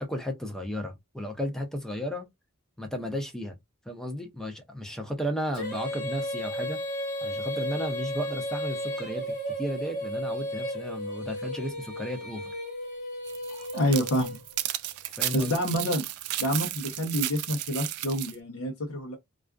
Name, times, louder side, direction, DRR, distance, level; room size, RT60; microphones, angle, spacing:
voice 1, 0.0-2.3 2.8-3.6 3.9-6.8 7.2-12.5 15.1-15.7, equal, ahead, 0.4 m, -34 dB
Female singing, 5.5-14.7, equal, 35° left, 1.0 m, -34 dB
sound 1, 13.3-18.4, right 14 dB, 90° right, 0.3 m, -34 dB
voice 2, 13.5-14.4 15.3-16.0 16.4-19.2, equal, 85° left, 0.7 m, -28 dB
2.4 x 2.3 x 2.2 m
head